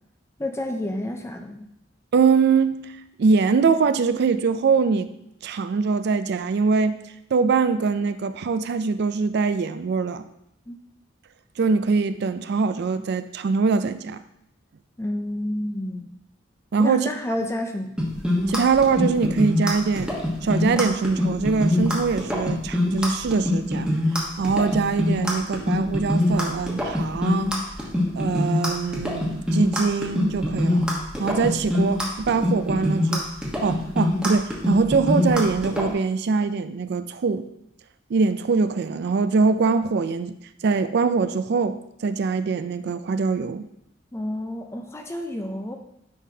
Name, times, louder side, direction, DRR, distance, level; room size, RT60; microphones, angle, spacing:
voice 1, 0.4-1.7 10.7-10.8 15.0-16.1 16.8-17.9 44.1-45.7, left 1 dB, 15° left, 4 dB, 0.4 m, -30 dB
voice 2, 2.1-5.1 5.4-7.0 7.3-10.2 11.6-14.2 16.7-17.1 18.5-20.1 20.4-23.9 24.4-27.5 28.1-30.9 31.2-33.2 33.6-37.5 38.1-40.3 40.6-43.7, right 4 dB, 60° right, 12 dB, 0.4 m, -23 dB
sound 1, 18.0-35.9, left 1 dB, 5° right, 1.1 m, -23 dB
9.8 x 3.8 x 2.7 m, 0.80 s
head